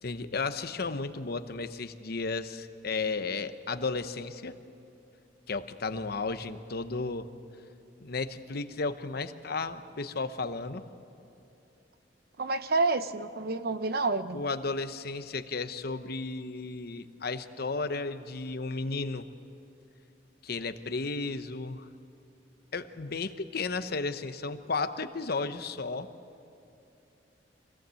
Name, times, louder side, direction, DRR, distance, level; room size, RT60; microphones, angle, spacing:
voice 1, 0.0-4.6 5.5-7.3 8.0-10.8 14.3-19.3 20.4-21.9 22.7-26.1, left 3 dB, 60° left, 10 dB, 0.9 m, -34 dB
voice 2, 12.4-14.4, right 3 dB, 60° right, 11 dB, 0.8 m, -28 dB
24.5 x 17.5 x 7.7 m, 2.8 s
head